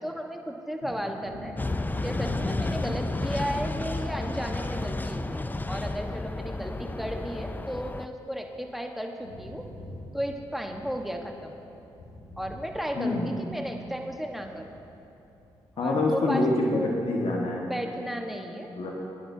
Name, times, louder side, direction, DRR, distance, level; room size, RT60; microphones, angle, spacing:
voice 1, 0.0-1.5 2.0-9.7 10.1-11.6 12.4-14.7 15.8-16.4 17.7-18.7, equal, ahead, 2 dB, 1.3 m, -34 dB
Wind / Thunder, 1.2-8.8 9.0-16.3 16.7-16.9, left 1 dB, 80° left, 2.1 m, -44 dB
sound 1, 1.6-8.1, left 2 dB, 15° left, 0.5 m, -32 dB
voice 2, 12.9-13.3 15.8-17.6 18.7-18.9, left 2 dB, 60° left, -2 dB, 1.6 m, -26 dB
21.0 x 10.0 x 2.8 m, 2.8 s
hypercardioid pair, 40°, 12 cm